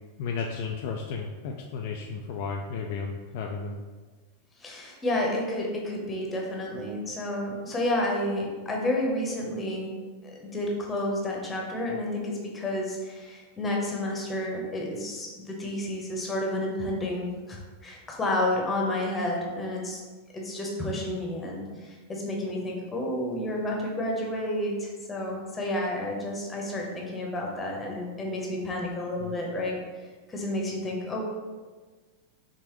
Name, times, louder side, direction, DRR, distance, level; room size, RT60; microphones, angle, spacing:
voice 1, 0.2-3.8 29.2-29.4, left 5 dB, 50° left, 1 dB, 0.4 m, -33 dB
voice 2, 4.6-10.0 10.2-20.0 20.3-29.8 30.3-31.2, left 1 dB, 15° left, -1 dB, 1.0 m, -30 dB
4.8 x 3.5 x 3.0 m, 1.4 s
figure-of-eight pair, 90°, 0 cm